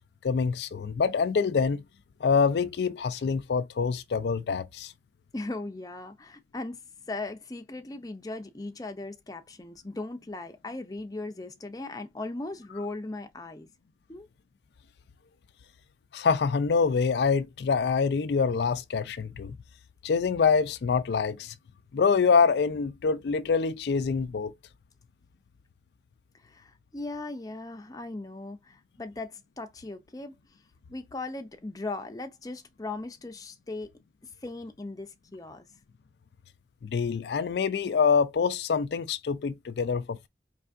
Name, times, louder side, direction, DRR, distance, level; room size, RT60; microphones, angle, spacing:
voice 1, 0.2-1.8 2.2-4.9 16.1-19.6 20.0-21.5 21.9-24.5 36.8-40.3, left 5 dB, 70° left, 0.4 m, -25 dB
voice 2, 5.3-6.8 7.1-13.7 14.1-14.3 26.4-30.4 30.9-33.9 34.4-35.7, left 2 dB, 20° left, 0.5 m, -38 dB
4.5 x 3.2 x 2.5 m
head